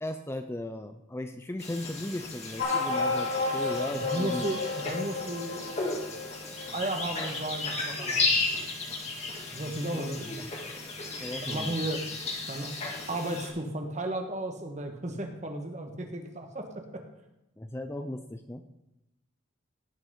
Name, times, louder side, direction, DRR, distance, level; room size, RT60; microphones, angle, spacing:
voice 1, 0.0-4.5 9.9-10.3 11.2-11.8 17.6-18.6, left 1 dB, 10° left, 7 dB, 0.5 m, -37 dB
sound 1, 1.6-13.5, left 3 dB, 35° left, 2.0 m, -34 dB
sound 2, 2.6-7.5, left 3 dB, 75° left, 5.0 m, -32 dB
voice 2, 3.9-5.7 6.5-8.4 9.5-10.5 11.4-12.0 12.5-12.7 13.1-17.0, right 1 dB, 35° right, 4 dB, 1.5 m, -34 dB
17.0 x 6.0 x 5.6 m, 0.91 s
head